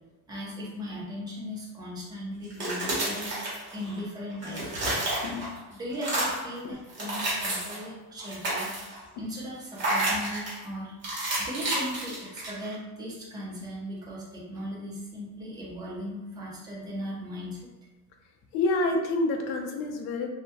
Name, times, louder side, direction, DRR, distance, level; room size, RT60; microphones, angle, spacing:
voice 1, 0.3-3.3 3.7-5.2 5.7-8.7 9.2-10.9 11.4-17.7, equal, 10° right, -5 dB, 0.3 m, -38 dB
sound 1, 2.4-4.0 4.3-5.6 5.9-6.5 6.9-7.8 8.2-9.0 9.8-10.6 11.0-12.7, right 1 dB, 30° right, 0.8 m, -30 dB
voice 2, 18.5-20.3, left 2 dB, 80° left, 4 dB, 0.5 m, -28 dB
2.2 x 2.1 x 2.7 m, 1.1 s
cardioid pair, 170°, 37 cm